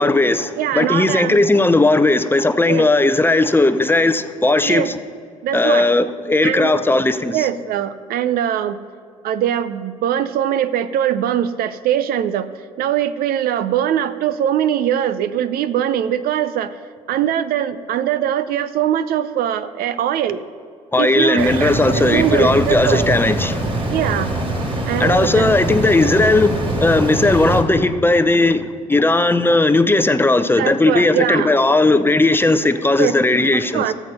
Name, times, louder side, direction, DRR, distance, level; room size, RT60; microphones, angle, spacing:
voice 1, 0.0-4.9 5.5-7.5 20.9-23.6 25.0-33.9, left 2 dB, 15° left, 0.6 m, -16 dB
voice 2, 0.6-1.4 2.7-2.9 4.6-4.9 5.4-5.9 6.4-6.8 7.3-8.8 9.2-12.5 12.8-16.7 17.1-20.4 21.0-23.2 23.9-24.3 24.9-25.5 30.6-31.5 33.0-33.2 33.5-33.9, right 10 dB, 65° right, 0.6 m, -21 dB
sound 1, 21.4-27.6, right 1 dB, 30° right, 3.0 m, -23 dB
13.5 x 7.2 x 5.4 m
supercardioid pair, 70°, 17 cm